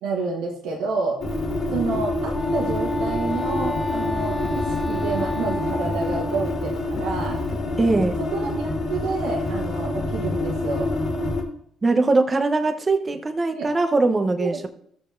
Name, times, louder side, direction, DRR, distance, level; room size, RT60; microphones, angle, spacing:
voice 1, 0.0-1.2 1.7-7.4 8.2-10.9 13.5-13.7 14.4-14.7, right 4 dB, 85° right, -1 dB, 1.3 m, -29 dB
sound 1, 1.2-11.4, left 2 dB, 60° left, 2.1 m, -27 dB
Wind instrument woodwind instrument, 2.1-6.8, left 1 dB, ahead, 1.0 m, -32 dB
voice 2, 7.8-8.2 11.8-14.7, right 3 dB, 30° right, 6 dB, 1.0 m, -21 dB
13.5 x 6.7 x 2.6 m, 0.67 s
supercardioid pair, 65°, 0 cm